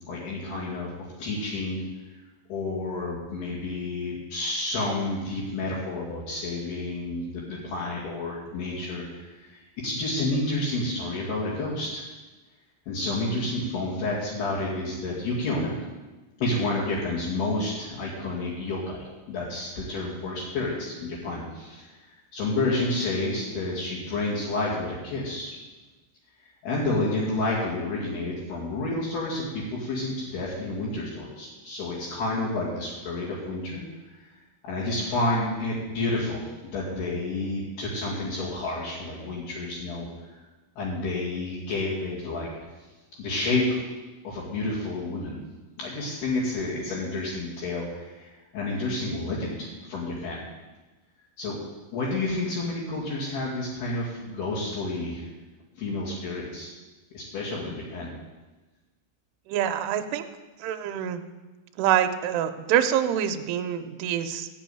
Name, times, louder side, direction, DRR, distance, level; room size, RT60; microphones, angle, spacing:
voice 1, 0.1-0.9 1.2-1.8 2.5-12.0 12.9-15.8 16.4-21.9 22.3-25.6 26.6-33.8 34.1-34.3 34.6-40.1 40.8-42.5 43.2-43.8 44.2-45.4 45.8-50.4 51.4-51.6 51.9-55.3 55.8-56.7 57.1-58.1, left 2 dB, 65° left, -9 dB, 4.2 m, -30 dB
voice 2, 59.5-60.3 60.6-61.2 61.8-64.5, right 10 dB, 80° right, 5 dB, 2.6 m, -25 dB
13.5 x 5.4 x 9.1 m, 1.2 s
omnidirectional pair, 5.0 m